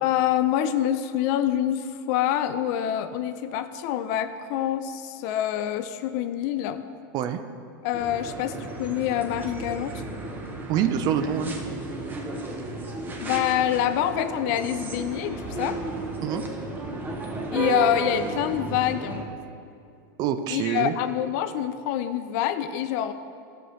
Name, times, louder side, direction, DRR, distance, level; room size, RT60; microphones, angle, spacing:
voice 1, 0.0-6.9 7.8-10.0 13.2-15.8 17.5-19.3 20.5-23.1, left 11 dB, 55° left, 11 dB, 0.4 m, -26 dB
sound 1, 7.9-19.2, right 3 dB, 15° right, 0.8 m, -33 dB
voice 2, 10.7-11.6 16.2-16.4 20.2-20.9, right 9 dB, 40° right, 10 dB, 0.4 m, -25 dB
sound 2, 15.3-17.8, left 2 dB, 20° left, 1.1 m, -47 dB
11.5 x 6.4 x 3.1 m, 2.4 s
supercardioid pair, 140°, 11 cm